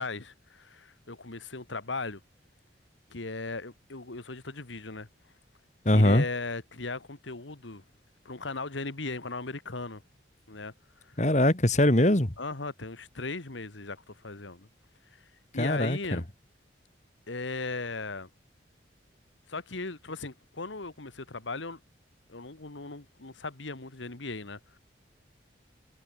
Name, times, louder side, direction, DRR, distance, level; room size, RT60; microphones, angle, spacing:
voice 1, 0.0-2.2 3.1-5.1 5.9-7.8 8.3-10.0 10.5-10.7 11.0-11.1 12.4-14.7 15.2-15.3 15.5-16.2 17.3-18.3 19.5-21.8 22.3-24.8, left 3 dB, 85° left, 1.8 m, -37 dB
voice 2, 5.8-6.3 11.2-12.3 15.5-16.2, left 1 dB, 40° left, 2.2 m, -22 dB
head